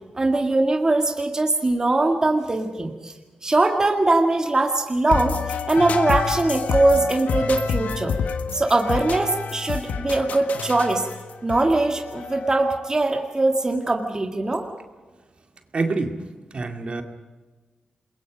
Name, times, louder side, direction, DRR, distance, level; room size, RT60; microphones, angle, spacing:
voice 1, 0.2-3.1 3.4-8.2 8.5-11.1 11.4-14.7, right 2 dB, 25° right, 3 dB, 1.9 m, -21 dB
sound 1, 5.1-12.9, left 6 dB, 85° left, 1.4 m, -28 dB
voice 2, 15.7-16.2 16.5-17.0, right 3 dB, 45° right, 4 dB, 2.3 m, -25 dB
28.5 x 22.0 x 5.2 m, 1.3 s
wide cardioid pair, 95°, 3 cm